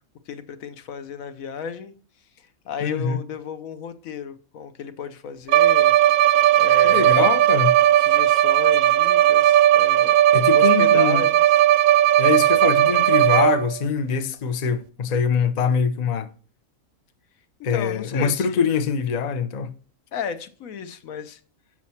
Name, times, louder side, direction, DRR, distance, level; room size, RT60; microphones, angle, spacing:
voice 1, 0.3-1.9 2.4-5.9 6.6-7.3 8.0-10.2 10.5-11.6 17.7-18.8 20.1-21.4, left 7 dB, 75° left, 1.2 m, -34 dB
voice 2, 2.8-3.2 6.8-7.8 10.3-11.2 12.2-16.3 17.6-19.7, left 6 dB, 45° left, 0.5 m, -23 dB
Bowed string instrument, 5.5-13.8, right 12 dB, 85° right, 1.0 m, -17 dB
7.4 x 5.9 x 4.2 m
omnidirectional pair, 1.5 m